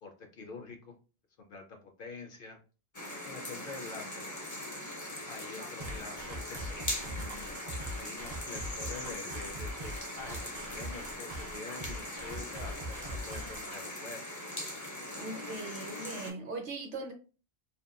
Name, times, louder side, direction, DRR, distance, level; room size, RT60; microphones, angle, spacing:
voice 1, 0.0-0.9 1.4-2.6 3.2-4.2 5.3-7.7 7.9-14.2, left 3 dB, 60° left, 0.7 m, -46 dB
sound 1, 2.9-16.3, left 1 dB, 25° left, 0.4 m, -41 dB
sound 2, 5.8-13.8, equal, 45° right, 0.4 m, -42 dB
voice 2, 15.2-17.1, right 2 dB, 60° right, 0.7 m, -40 dB
2.8 x 2.2 x 2.3 m
omnidirectional pair, 1.1 m